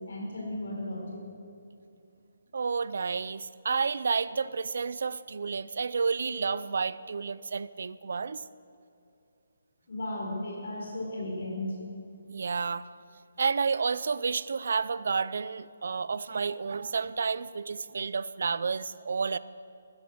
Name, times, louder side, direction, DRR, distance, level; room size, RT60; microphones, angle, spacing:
voice 1, 0.0-1.3 9.9-11.8, left 1 dB, 50° left, -1 dB, 4.9 m, -35 dB
voice 2, 2.5-8.4 12.3-12.9 13.4-19.4, right 5 dB, 45° right, 17 dB, 0.5 m, -30 dB
15.5 x 13.5 x 6.4 m, 2.6 s
hypercardioid pair, 180°, 0 cm